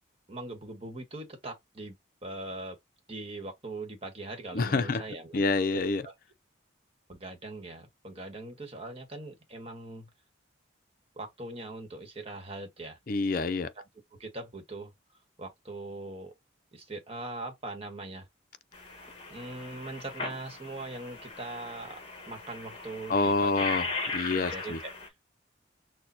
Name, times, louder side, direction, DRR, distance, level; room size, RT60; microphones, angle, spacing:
voice 1, 0.3-1.9 2.2-2.8 3.1-5.4 6.0-6.1 7.1-10.1 11.2-13.0 14.1-14.9 15.4-16.3 16.7-18.3 19.3-22.0 22.2-23.7 24.3-24.9, right 2 dB, 30° right, 1.2 m, -41 dB
voice 2, 4.5-5.0 5.3-6.0 13.1-13.7 23.1-23.9 24.1-24.8, left 3 dB, 45° left, 0.5 m, -27 dB
sound 1, 18.7-25.1, left 3 dB, 30° left, 1.3 m, -38 dB
6.3 x 2.2 x 2.7 m
head